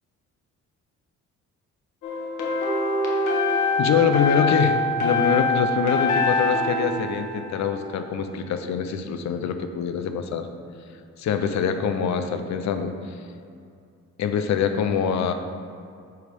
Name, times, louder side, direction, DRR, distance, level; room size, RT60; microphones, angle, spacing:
sound 1, 2.0-8.0, left 2 dB, 90° left, 1.3 m, -24 dB
voice 1, 3.8-10.5 11.2-13.2 14.2-15.3, left 7 dB, 65° left, 8 dB, 0.7 m, -24 dB
9.3 x 3.2 x 5.2 m, 2.4 s
cardioid pair, 90°, 30 cm